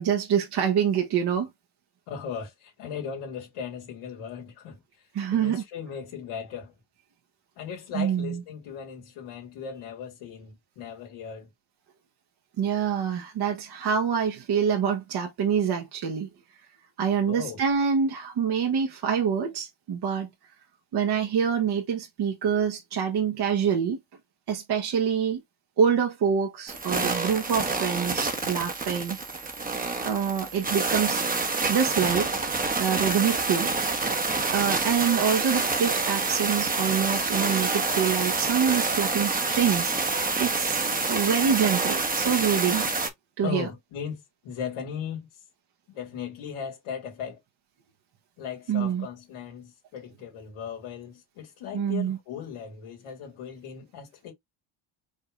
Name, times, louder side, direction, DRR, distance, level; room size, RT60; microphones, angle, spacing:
voice 1, 0.0-1.5 5.1-5.6 7.9-8.4 12.6-16.3 17.0-20.3 20.9-24.0 24.5-25.4 25.8-29.5 30.0-31.2 31.7-32.3 32.8-33.7 34.5-39.9 40.4-42.9 43.4-43.7 48.7-49.1 51.7-52.2, right 7 dB, 50° right, 1.3 m, -26 dB
voice 2, 2.1-4.8 5.3-6.7 7.6-11.5 17.2-17.6 43.4-45.3 45.9-47.4 48.4-54.3, left 7 dB, 85° left, 2.5 m, -37 dB
sound 1, 26.7-43.1, right 3 dB, 15° right, 1.1 m, -27 dB
5.1 x 3.5 x 2.5 m
cardioid pair, 115°, 49 cm